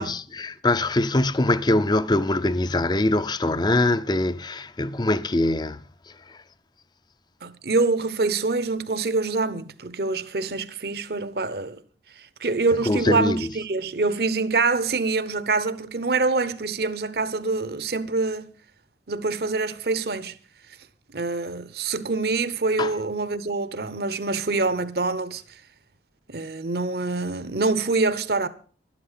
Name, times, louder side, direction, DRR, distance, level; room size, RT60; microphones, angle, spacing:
voice 1, 0.0-5.8 6.3-6.4 12.9-13.5 22.8-22.9, left 2 dB, 25° left, 0.5 m, -23 dB
voice 2, 7.4-11.8 12.4-18.5 19.1-20.3 21.1-25.4 26.3-28.5, right 3 dB, 55° right, 0.9 m, -25 dB
12.5 x 11.5 x 5.7 m
head